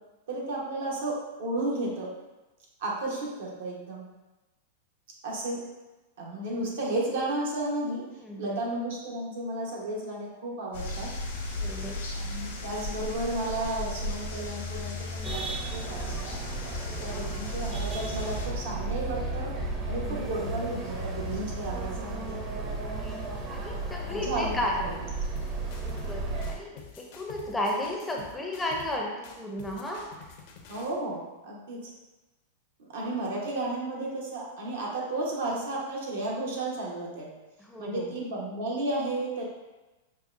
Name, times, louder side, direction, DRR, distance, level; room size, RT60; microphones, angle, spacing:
voice 1, 0.3-2.1 2.8-4.0 5.2-5.6 6.2-8.0 8.4-11.1 12.2-16.4 17.0-19.5 19.9-22.4 23.5-24.9 30.7-31.9 32.8-37.3 37.8-39.4, right 2 dB, 75° right, -3 dB, 1.0 m, -33 dB
voice 2, 8.2-8.6 11.5-12.0 16.9-17.2 19.8-20.2 22.3-22.4 23.0-23.2 23.5-24.7 25.8-30.0 37.6-38.1, left 1 dB, 10° left, -1 dB, 0.5 m, -34 dB
sound 1, 10.7-18.5, left 1 dB, 75° left, 0.9 m, -36 dB
sound 2, 15.2-26.5, right 2 dB, 30° right, 0.6 m, -34 dB
sound 3, 25.4-26.2 26.4-29.0 29.2-31.0, left 7 dB, 55° left, 0.5 m, -48 dB
5.2 x 2.2 x 2.5 m, 1.1 s
hypercardioid pair, 130°, 0 cm